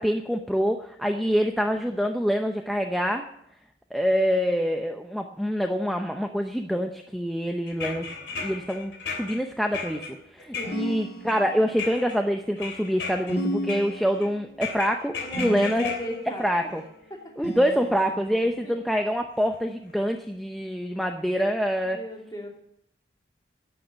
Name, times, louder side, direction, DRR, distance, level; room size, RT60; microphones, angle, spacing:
voice 1, 0.0-3.3 3.9-15.9 16.4-16.8 17.4-22.0, equal, ahead, 4 dB, 0.6 m, -26 dB
sound 1, 7.7-11.4 11.8-12.2 12.6-13.4 13.7-14.3 14.6-17.2 18.3-18.4 19.4-19.5 19.9-20.0, left 5 dB, 80° left, 3.0 m, -36 dB
voice 2, 10.5-10.9 15.2-16.5 17.1-17.2 18.6-18.8 21.9-22.5, left 2 dB, 20° left, 0 dB, 2.8 m, -36 dB
sound 2, 10.6-11.8 13.3-14.4 15.3-16.2 17.4-18.4, equal, 60° left, 3.3 m, -34 dB
11.5 x 8.7 x 8.7 m, 0.75 s
head